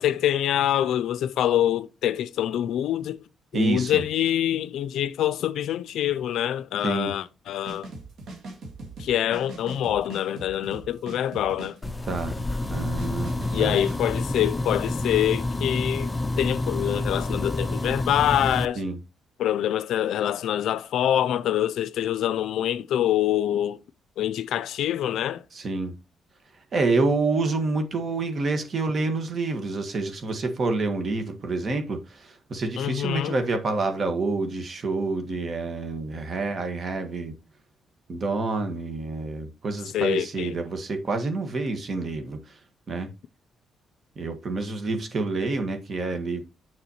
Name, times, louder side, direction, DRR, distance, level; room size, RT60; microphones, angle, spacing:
voice 1, 0.0-3.2 3.5-7.9 9.0-11.8 13.5-16.1 16.4-18.8 19.4-23.8 24.2-25.4 32.8-33.4 39.9-40.5, left 11 dB, 75° left, 0.4 m, -25 dB
voice 2, 3.5-4.0 6.8-7.1 12.1-12.4 12.7-13.8 18.7-19.0 25.5-25.9 26.7-37.3 38.1-42.6 42.9-43.1 44.2-46.4, right 3 dB, 45° right, 1.5 m, -28 dB
sound 1, 7.6-14.0, right 2 dB, 65° right, 2.0 m, -41 dB
sound 2, 11.8-18.6, left 2 dB, 15° left, 0.5 m, -28 dB
6.9 x 6.2 x 3.0 m
cardioid pair, 90°, 0 cm